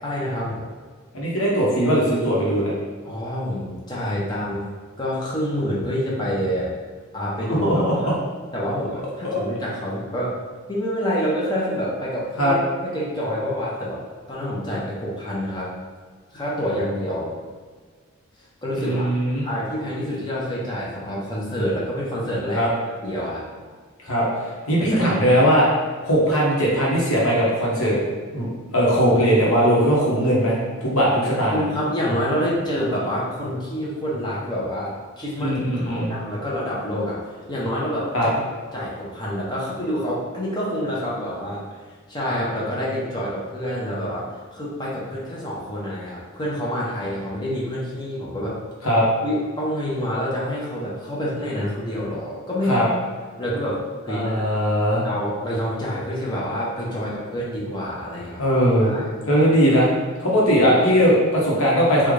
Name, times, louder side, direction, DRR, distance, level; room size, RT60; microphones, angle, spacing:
voice 1, 0.0-0.6 3.0-4.7 5.0-6.7 7.1-8.1 8.5-10.4 10.7-12.6 12.8-14.0 14.3-15.7 16.3-17.3 18.6-19.1 19.4-22.7 23.0-23.4 24.8-25.1 31.5-37.2 37.5-38.3 38.7-41.6 42.1-48.6 49.2-52.9 53.4-54.4 55.0-58.4 58.8-59.1, equal, 20° left, -6 dB, 0.7 m, -27 dB
voice 2, 1.1-2.7 7.5-8.1 9.2-9.4 12.4-12.5 18.8-19.4 22.5-22.7 24.0-25.7 26.0-27.9 28.3-28.4 28.7-31.5 35.4-36.1 38.1-38.3 48.8-49.1 52.7-52.8 54.1-55.0 58.4-59.9 60.2-62.1, equal, 80° left, -5 dB, 1.0 m, -19 dB
3.7 x 2.3 x 3.2 m, 1.5 s
head